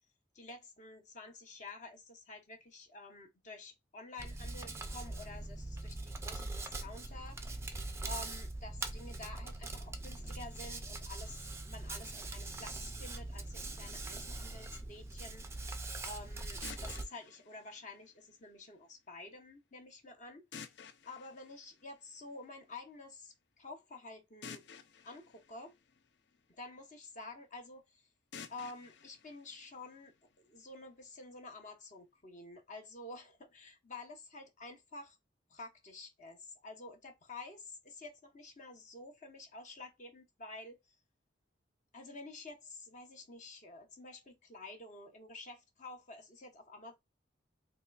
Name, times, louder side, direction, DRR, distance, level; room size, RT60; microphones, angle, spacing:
voice 1, 0.3-7.4 8.0-15.4 16.0-20.5 21.1-24.6 25.0-25.7 26.6-28.1 28.5-35.2 35.5-41.0 41.9-47.0, left 2 dB, 40° left, 0.9 m, -50 dB
Hands, 4.2-17.0, right 2 dB, 15° right, 0.4 m, -42 dB
sound 1, 16.6-18.6 20.5-22.5 24.4-26.6 28.3-30.3, left 6 dB, 60° left, 0.5 m, -53 dB
3.9 x 3.1 x 2.3 m
head